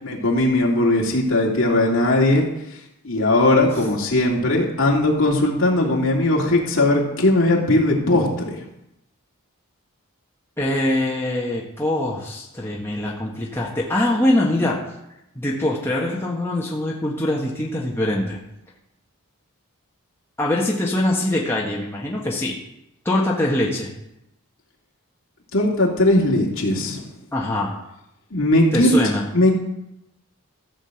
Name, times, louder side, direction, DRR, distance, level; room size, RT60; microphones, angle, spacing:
voice 1, 0.0-2.5 3.0-8.6 25.5-27.0 28.3-28.9 29.3-29.6, left 1 dB, 60° left, -2 dB, 2.6 m, -19 dB
voice 2, 10.6-14.8 15.3-18.4 20.4-22.5 23.0-23.9 27.3-27.7 28.7-29.2, left 1 dB, 10° left, -4 dB, 1.5 m, -23 dB
14.0 x 5.2 x 7.8 m, 0.85 s
head